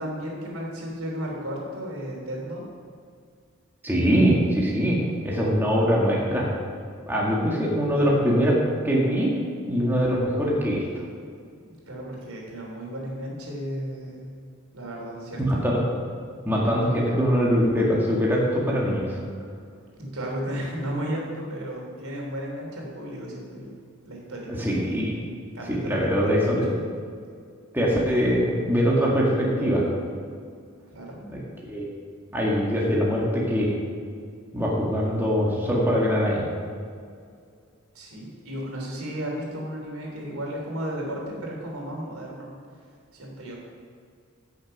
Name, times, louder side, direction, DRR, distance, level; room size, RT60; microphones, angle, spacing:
voice 1, 0.0-2.6 11.6-14.3 14.7-15.4 20.0-23.7 24.0-24.5 25.5-26.5 30.9-31.2 37.9-42.5 43.1-43.6, equal, 85° right, -2 dB, 3.2 m, -34 dB
voice 2, 3.8-5.0 5.2-6.5 7.1-8.6 8.8-9.3 9.6-10.8 15.5-15.8 16.5-19.2 24.5-25.2 25.7-26.7 27.7-29.8 31.3-31.4 31.7-31.9 32.3-33.7 34.5-36.4, equal, 10° right, -5 dB, 2.0 m, -22 dB
15.5 x 6.6 x 5.4 m, 2.2 s
head